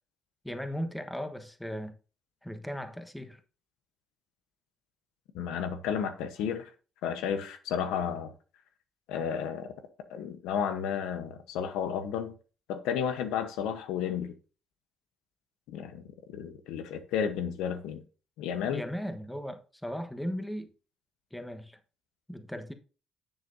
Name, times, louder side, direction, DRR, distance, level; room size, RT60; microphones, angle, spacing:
voice 1, 0.4-1.9 2.4-3.4 18.7-20.7 21.3-21.8 22.3-22.7, equal, 5° left, 1.3 m, -37 dB
voice 2, 5.3-6.7 7.0-8.3 9.1-9.7 10.1-12.3 12.7-14.3 15.7-18.0 18.4-18.8, left 7 dB, 90° left, 1.0 m, -32 dB
10.0 x 7.3 x 2.7 m
cardioid pair, 80°, 0 cm